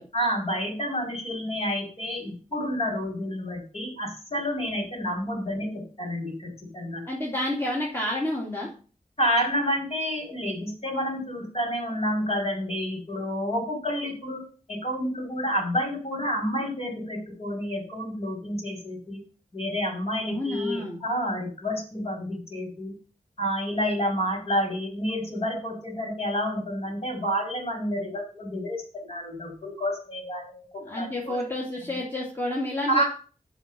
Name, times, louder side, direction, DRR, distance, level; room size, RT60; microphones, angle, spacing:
voice 1, 0.1-7.0 9.2-14.4 14.7-19.2 19.5-22.9 23.4-30.7 30.9-31.4 31.9-32.0 32.9-33.0, equal, 50° left, 0 dB, 5.3 m, -29 dB
voice 2, 7.1-8.7 20.3-21.0 30.9-33.0, left 1 dB, 15° left, -3 dB, 2.3 m, -29 dB
8.0 x 5.8 x 7.3 m, 0.38 s
wide cardioid pair, 100°, 14 cm